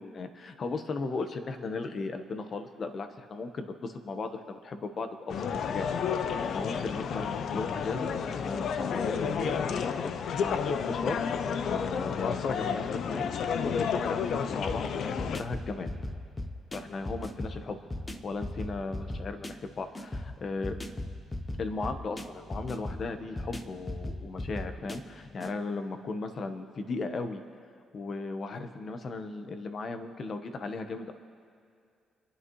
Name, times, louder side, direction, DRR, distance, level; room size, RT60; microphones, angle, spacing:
voice 1, 0.0-15.9 16.7-17.8 18.2-20.8 21.6-27.4 27.9-31.1, left 3 dB, 50° left, 8 dB, 1.1 m, -36 dB
sound 1, 5.3-15.4, left 6 dB, 65° left, 0.6 m, -31 dB
sound 2, 14.7-25.5, left 1 dB, 20° left, 0.9 m, -38 dB
27.5 x 11.5 x 3.2 m, 2.3 s
cardioid pair, 90°, 0 cm